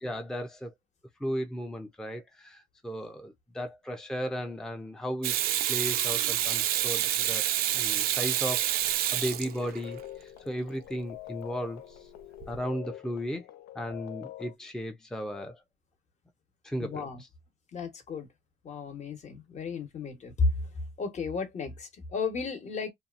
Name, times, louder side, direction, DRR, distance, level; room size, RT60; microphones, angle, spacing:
voice 1, 0.0-0.7 1.2-5.4 5.7-12.1 12.5-13.4 13.7-15.6 16.6-17.0, equal, 5° left, 0.5 m, -35 dB
Water tap faucet / Sink (filling or washing), 5.2-10.0 12.4-12.6, right 12 dB, 65° right, 0.4 m, -28 dB
sound 1, 9.4-14.5, left 14 dB, 70° left, 0.4 m, -45 dB
voice 2, 16.8-17.2 17.7-18.3 18.6-22.9, left 4 dB, 45° left, 1.1 m, -33 dB
2.7 x 2.3 x 2.5 m
cardioid pair, 110°, 17 cm